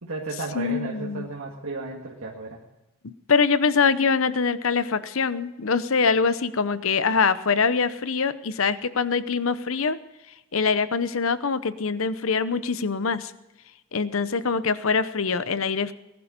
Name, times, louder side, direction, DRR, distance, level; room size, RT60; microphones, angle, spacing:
voice 1, 0.0-2.6, right 3 dB, 85° right, -3 dB, 2.1 m, -34 dB
voice 2, 0.5-1.3 3.0-10.0 10.5-13.3 13.9-15.9, left 5 dB, 75° left, 14 dB, 0.8 m, -24 dB
19.5 x 11.5 x 5.2 m, 0.97 s
head